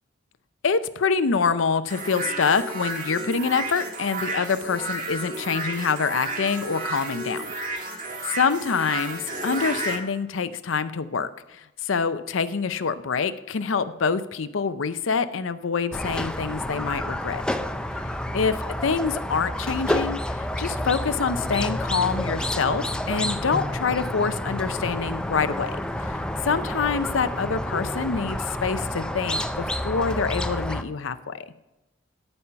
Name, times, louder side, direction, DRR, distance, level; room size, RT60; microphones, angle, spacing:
voice 1, 0.6-7.5 8.2-17.4 18.3-25.8 26.1-31.4, left 5 dB, 75° left, 12 dB, 0.6 m, -26 dB
sound 1, 1.9-10.0, right 2 dB, 45° right, 1.7 m, -32 dB
Squeak, 15.9-30.8, left 1 dB, 5° left, 0.4 m, -29 dB
13.0 x 5.5 x 5.6 m, 0.95 s
head